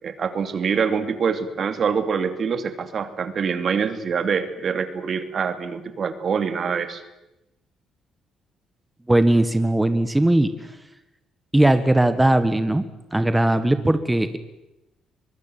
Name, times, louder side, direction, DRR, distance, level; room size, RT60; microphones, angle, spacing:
voice 1, 0.0-7.0, right 6 dB, 50° right, 10 dB, 2.7 m, -25 dB
voice 2, 9.1-10.5 11.5-12.8 13.1-14.4, right 1 dB, 10° right, 10 dB, 1.7 m, -19 dB
24.0 x 21.5 x 9.2 m, 0.93 s
cardioid pair, 90°, 0 cm